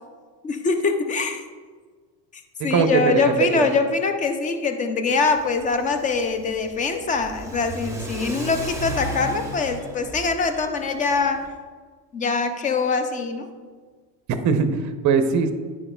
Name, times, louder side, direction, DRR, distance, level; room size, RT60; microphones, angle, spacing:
voice 1, 0.4-1.4 2.3-11.4 12.1-13.6, left 4 dB, 20° left, 7 dB, 0.3 m, -23 dB
voice 2, 2.7-3.7 14.4-15.5, right 6 dB, 35° right, 9 dB, 0.6 m, -20 dB
Car / Accelerating revving vroom, 5.3-11.5, right 1 dB, 5° right, 1.0 m, -35 dB
9.6 x 4.8 x 2.2 m, 1.5 s
supercardioid pair, 105°, 49 cm